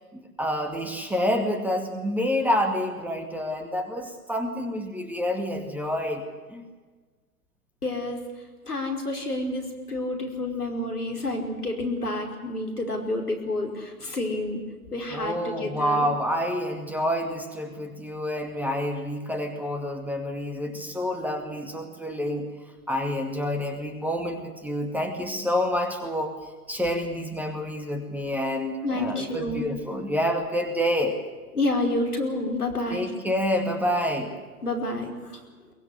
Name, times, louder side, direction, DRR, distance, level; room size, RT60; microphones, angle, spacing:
voice 1, 0.4-6.6 15.1-22.5 22.9-26.3 26.7-31.2 32.9-34.3, equal, 5° right, 4 dB, 2.1 m, -28 dB
voice 2, 7.8-8.2 8.6-14.6 14.9-16.1 28.8-29.7 31.5-33.1 34.6-35.4, left 2 dB, 75° left, 3 dB, 5.2 m, -29 dB
22.5 x 20.5 x 8.2 m, 1.4 s
figure-of-eight pair, 115°, 46 cm